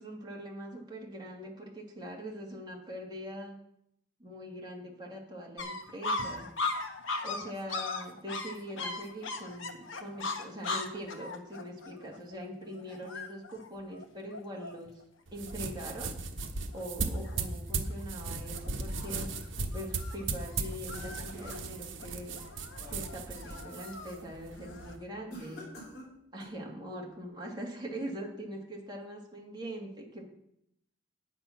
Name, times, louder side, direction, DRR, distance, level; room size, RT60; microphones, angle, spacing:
voice 1, 0.0-3.6 4.2-6.5 7.2-14.9 15.3-16.1 16.7-19.3 19.7-22.4 22.9-25.6 26.3-30.3, equal, 20° right, -2 dB, 2.3 m, -42 dB
sound 1, 5.6-15.0 15.5-15.6 15.8-16.4 16.7-17.4 17.8-18.2 18.5-25.0, left 3 dB, 80° left, 1.2 m, -39 dB
sound 2, 15.3-25.0, right 3 dB, 70° right, 1.2 m, -37 dB
sound 3, 20.9-21.9 22.4-23.7 24.1-24.4 25.3-26.7, equal, 55° left, 4.6 m, -50 dB
9.0 x 8.9 x 5.9 m, 0.76 s
head